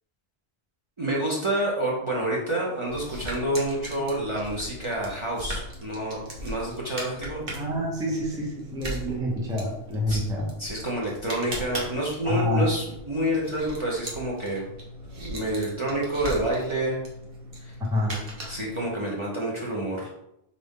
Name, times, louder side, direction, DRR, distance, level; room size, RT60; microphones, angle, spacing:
voice 1, 1.0-7.4 10.1-10.2 10.6-14.6 15.2-17.0 17.6-17.7 18.5-20.1, right 1 dB, 30° right, -4 dB, 0.7 m, -28 dB
sound 1, 2.9-18.9, equal, 60° right, 1.1 m, -39 dB
voice 2, 7.5-10.5 12.2-12.7 17.9-18.1, left 1 dB, 5° right, -3 dB, 0.6 m, -27 dB
3.9 x 2.5 x 3.6 m, 0.83 s
omnidirectional pair, 1.1 m